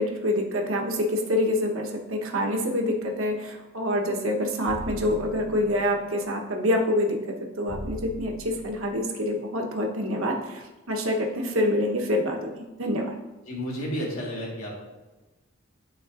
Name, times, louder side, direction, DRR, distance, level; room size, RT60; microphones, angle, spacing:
voice 1, 0.0-7.2 7.6-13.1, left 1 dB, 75° right, 1 dB, 1.1 m, -26 dB
sound 1, 4.7-6.1 7.7-9.1, left 1 dB, 35° left, 1.5 m, -40 dB
voice 2, 13.4-14.8, equal, 85° left, -4 dB, 1.7 m, -31 dB
11.5 x 4.0 x 2.6 m, 1.1 s
head